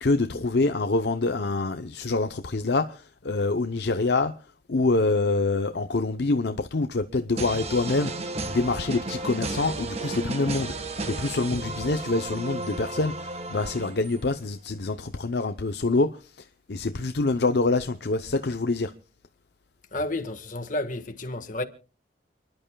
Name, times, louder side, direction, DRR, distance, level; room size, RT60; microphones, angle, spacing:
voice 1, 0.0-4.3 4.7-18.9, left 3 dB, 60° left, 0.7 m, -26 dB
sound 1, 7.4-14.3, right 2 dB, 35° right, 1.3 m, -33 dB
voice 2, 19.9-21.6, left 1 dB, 45° left, 1.5 m, -31 dB
29.5 x 11.0 x 2.3 m
head